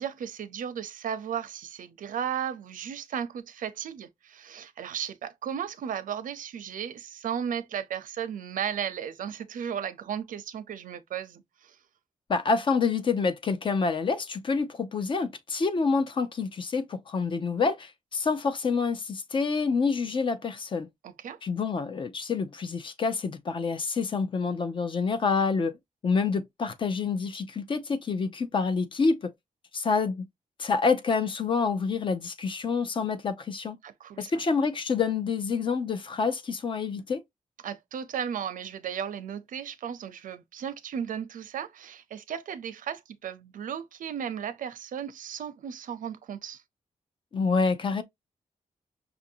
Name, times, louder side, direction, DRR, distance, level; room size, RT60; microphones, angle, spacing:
voice 1, 0.0-11.8 21.0-21.4 33.8-34.4 37.6-46.6, right 8 dB, 90° right, 0.6 m, -35 dB
voice 2, 12.3-20.9 21.4-25.7 26.0-29.3 29.7-30.2 30.6-33.8 34.2-37.2 47.3-48.0, left 4 dB, 40° left, 0.6 m, -27 dB
5.8 x 2.6 x 2.7 m
wide cardioid pair, 175°, 13 cm